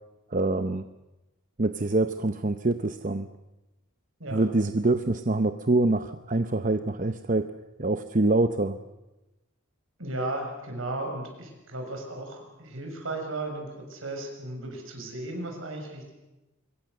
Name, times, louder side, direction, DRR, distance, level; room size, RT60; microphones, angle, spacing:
voice 1, 0.3-0.8 1.6-3.3 4.3-7.5 7.8-8.8, right 2 dB, 40° right, 9 dB, 0.8 m, -25 dB
voice 2, 10.0-16.1, right 2 dB, 70° right, 3 dB, 6.6 m, -35 dB
26.0 x 22.5 x 6.7 m, 1.0 s
head